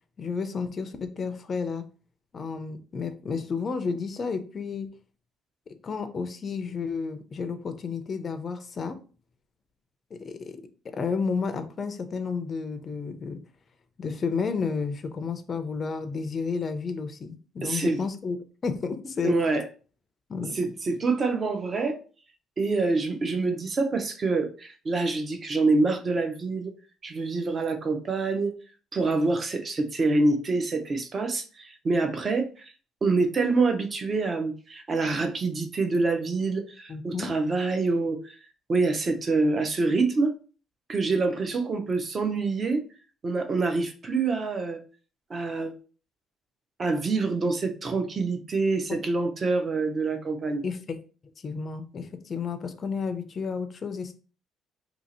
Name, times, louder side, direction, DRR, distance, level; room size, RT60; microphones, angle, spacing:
voice 1, 0.2-1.8 2.3-4.9 5.8-9.0 10.1-10.6 10.9-13.4 14.0-18.4 18.6-19.3 20.3-20.6 36.9-37.3 50.6-51.0 51.4-54.1, left 5 dB, 30° left, 0.4 m, -31 dB
voice 2, 17.6-18.0 19.2-19.7 20.5-22.0 22.6-26.7 27.0-28.5 28.9-32.7 33.0-38.3 38.7-40.3 40.9-42.8 43.2-44.8 45.3-45.7 46.8-50.6, right 3 dB, 30° right, 0.5 m, -26 dB
2.8 x 2.7 x 4.1 m
cardioid pair, 150°, 0 cm